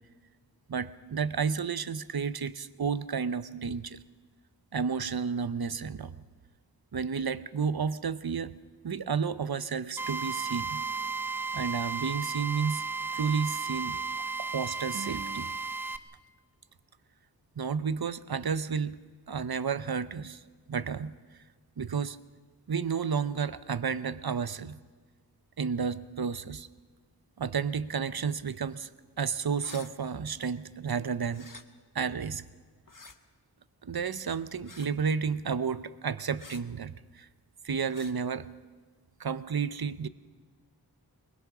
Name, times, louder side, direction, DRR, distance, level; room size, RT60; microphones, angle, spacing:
voice 1, 0.7-4.0 4.7-6.2 6.9-8.5 8.8-10.8 11.5-12.8 13.1-14.0 14.4-15.6 17.6-19.0 19.3-20.4 20.7-21.1 21.8-22.2 22.7-24.8 25.6-26.7 27.4-28.9 29.2-31.5 31.9-32.4 33.8-37.3 37.6-38.5 39.2-40.1, right 6 dB, 65° right, 14 dB, 0.8 m, -31 dB
Drill, 10.0-16.0, right 4 dB, 5° right, 0.8 m, -34 dB
sound 1, 29.6-29.9 31.3-31.6 32.9-33.2 34.7-35.0 36.4-36.6 37.9-38.1, left 3 dB, 50° left, 1.3 m, -48 dB
22.0 x 20.5 x 6.1 m, 1.5 s
wide cardioid pair, 45°, 40 cm